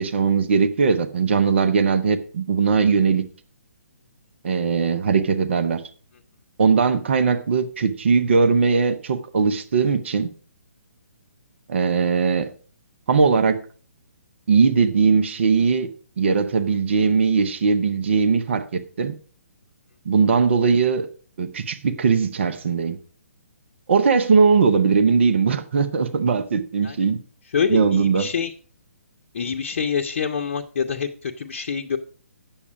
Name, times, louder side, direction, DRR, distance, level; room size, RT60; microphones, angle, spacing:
voice 1, 0.0-3.3 4.4-5.8 6.6-10.3 11.7-12.5 13.1-13.6 14.5-15.9 16.2-19.2 20.1-21.1 21.4-23.0 23.9-27.2 27.7-28.3, right 5 dB, 55° right, 0.8 m, -19 dB
voice 2, 27.5-28.5 29.3-32.0, left 6 dB, 50° left, 0.7 m, -26 dB
8.4 x 7.2 x 4.9 m
figure-of-eight pair, 135°, 8 cm